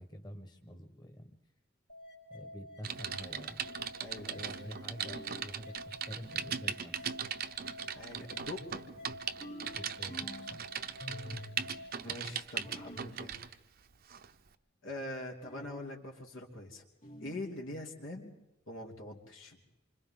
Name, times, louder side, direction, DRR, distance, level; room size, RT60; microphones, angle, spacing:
voice 1, 0.0-1.4 2.3-3.6 4.3-7.1 9.7-10.7 11.3-11.4 12.9-13.1, equal, 20° left, 4 dB, 1.3 m, -48 dB
sound 1, 1.9-11.9, left 1 dB, 60° left, 3.5 m, -50 dB
Typing, 2.8-13.6 14.1-14.3, right 8 dB, 50° right, 0.7 m, -39 dB
voice 2, 4.0-4.7 7.9-9.0 11.1-11.3 12.0-13.5 14.8-16.8 17.2-18.3 18.7-19.6, left 1 dB, 90° left, 0 dB, 3.0 m, -43 dB
sound 2, 5.0-5.6 6.2-6.7 9.4-10.6 11.0-11.7 12.6-13.1 15.4-15.9 17.0-17.5, equal, 40° left, 2.7 m, -48 dB
27.5 x 25.5 x 3.8 m, 0.97 s
head